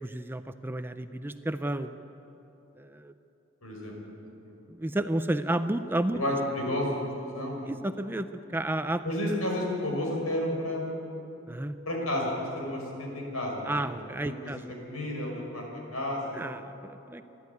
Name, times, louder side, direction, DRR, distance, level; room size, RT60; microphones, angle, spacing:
voice 1, 0.0-1.9 2.8-3.1 4.7-6.2 7.7-9.0 9.3-9.4 11.5-11.8 13.6-14.6 16.3-17.2, right 1 dB, 10° right, 9 dB, 0.4 m, -31 dB
voice 2, 3.6-3.9 4.4-4.5 6.1-7.7 9.0-11.1 11.9-14.0 14.2-14.3 14.9-16.4, left 1 dB, 80° left, 0 dB, 5.7 m, -31 dB
27.0 x 12.0 x 9.6 m, 3.0 s
head